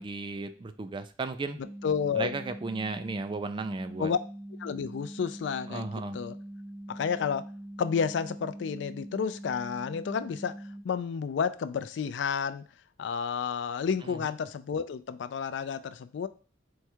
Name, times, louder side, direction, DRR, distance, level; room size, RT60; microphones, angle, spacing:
voice 1, 0.0-1.6 2.2-4.1 5.7-6.2 14.0-14.2, right 3 dB, 25° right, 9 dB, 0.3 m, -35 dB
sound 1, 1.6-10.8, right 1 dB, 10° right, 0.8 m, -43 dB
voice 2, 1.8-2.3 4.0-4.2 4.6-6.4 6.9-7.4 7.8-10.5 10.8-12.6 13.0-16.3, left 6 dB, 70° left, 13 dB, 0.3 m, -31 dB
4.6 x 2.3 x 4.3 m, 0.38 s
head